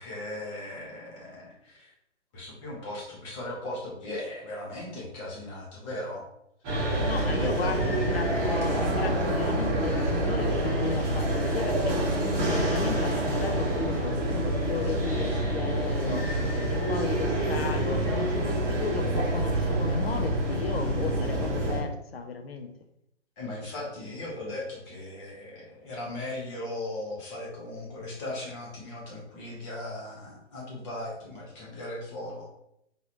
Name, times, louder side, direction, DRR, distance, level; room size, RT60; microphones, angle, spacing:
voice 1, 0.0-1.9 2.3-6.2 7.3-7.7 23.4-32.5, left 1 dB, 25° left, -4 dB, 1.3 m, -38 dB
sound 1, 6.6-21.8, right 1 dB, 20° right, 1.6 m, -27 dB
voice 2, 7.0-12.0 12.5-16.3 16.7-22.7, left 5 dB, 55° left, 7 dB, 0.7 m, -35 dB
3.9 x 3.7 x 3.0 m, 0.78 s
hypercardioid pair, 150°, 36 cm